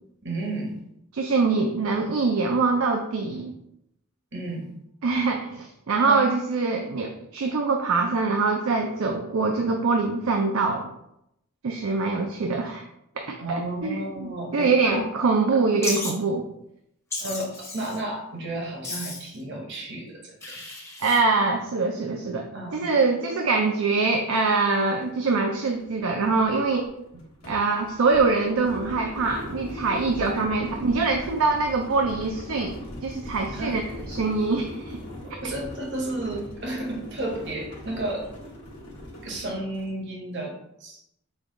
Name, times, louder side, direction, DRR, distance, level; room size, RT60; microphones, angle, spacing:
voice 1, 0.2-0.8 4.3-4.7 6.0-6.2 13.4-15.1 17.2-20.6 22.5-22.9 30.4-30.8 31.2-31.3 33.5-33.8 35.2-38.3 39.2-41.0, right 1 dB, 50° right, 0 dB, 0.9 m, -32 dB
voice 2, 1.1-3.6 5.0-10.9 11.6-12.8 13.2-16.4 21.0-26.9 27.5-32.8 33.0-33.8 34.1-35.0 35.3-35.4, right 4 dB, 70° right, 3 dB, 0.4 m, -24 dB
Wild animals, 15.8-16.1 17.1-18.0 18.8-19.4 20.4-21.2, left 2 dB, 10° left, 0.7 m, -33 dB
sound 1, 24.7-24.8 25.2-39.9, left 1 dB, 80° left, 1.2 m, -40 dB
5.3 x 2.3 x 3.7 m, 0.79 s
head